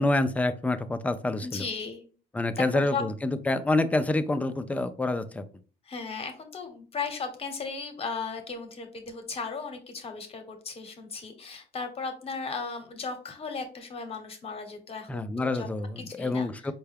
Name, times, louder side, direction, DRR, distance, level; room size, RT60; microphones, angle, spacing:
voice 1, 0.0-1.6 2.3-5.5 15.1-16.7, left 2 dB, 10° left, 10 dB, 0.3 m, -27 dB
voice 2, 1.4-2.0 2.6-3.0 5.9-15.7 16.0-16.5, left 4 dB, 35° left, 6 dB, 0.9 m, -36 dB
4.5 x 2.2 x 3.4 m, 0.39 s
cardioid pair, 110°, 17 cm